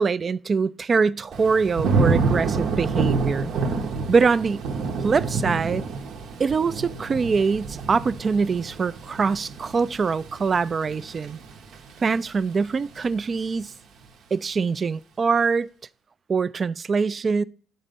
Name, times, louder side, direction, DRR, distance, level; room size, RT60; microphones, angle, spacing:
voice 1, 0.0-3.5 4.1-4.6 5.0-5.8 6.4-11.4 12.0-13.7 14.3-15.7 16.3-17.4, right 5 dB, 40° right, 0.3 m, -23 dB
Thunder / Rain, 1.3-12.3 12.7-13.1, right 4 dB, 75° right, 0.9 m, -28 dB
11.0 x 4.2 x 5.2 m
cardioid pair, 90°, 0 cm